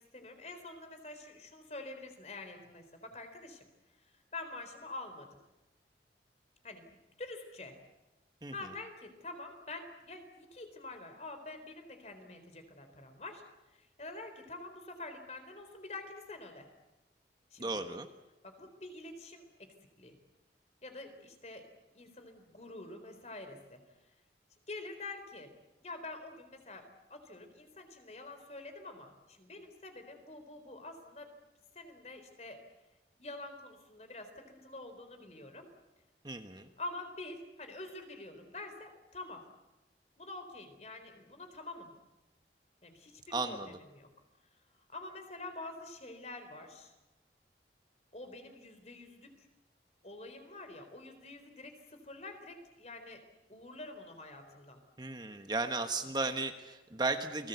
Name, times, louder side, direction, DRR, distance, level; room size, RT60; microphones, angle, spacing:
voice 1, 0.0-3.7 4.0-5.3 6.6-6.9 7.2-7.8 8.5-13.4 13.7-16.7 17.5-17.8 18.4-20.2 20.8-21.7 21.9-23.8 24.7-25.5 25.8-31.3 31.7-32.6 33.2-35.7 36.8-39.5 40.2-41.9 42.8-44.1 44.9-46.9 48.1-49.5 50.0-53.2 53.5-54.8, left 2 dB, 40° left, 7 dB, 4.1 m, -47 dB
voice 2, 17.6-18.1 36.2-36.7 43.3-43.8 55.0-57.5, right 3 dB, 25° right, 6 dB, 1.3 m, -35 dB
30.0 x 20.0 x 8.2 m, 1.0 s
head